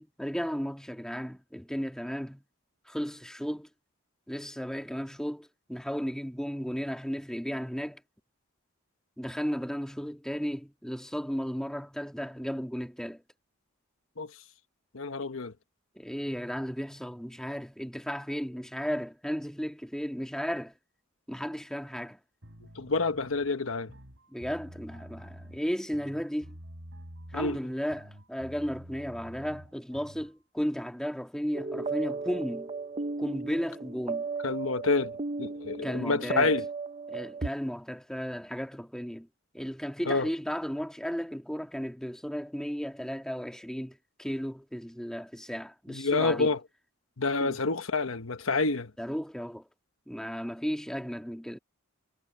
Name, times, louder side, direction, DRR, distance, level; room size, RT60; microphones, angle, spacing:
voice 1, 0.0-2.4 2.8-3.7 4.3-8.0 9.2-13.2 15.9-20.7 21.3-22.2 24.3-26.6 27.3-32.7 33.2-34.3 35.8-36.5 37.1-39.3 39.5-46.5 47.4-47.6 49.0-49.7 50.1-51.6, equal, 5° left, 1.7 m, -34 dB
voice 2, 14.9-15.5 22.7-23.9 27.3-27.6 34.4-36.6 40.1-40.3 45.9-46.6 47.2-48.9, left 3 dB, 90° left, 1.2 m, -28 dB
sound 1, 22.4-30.3, equal, 65° right, 5.2 m, -48 dB
sound 2, 31.5-37.5, right 4 dB, 30° right, 0.5 m, -35 dB
head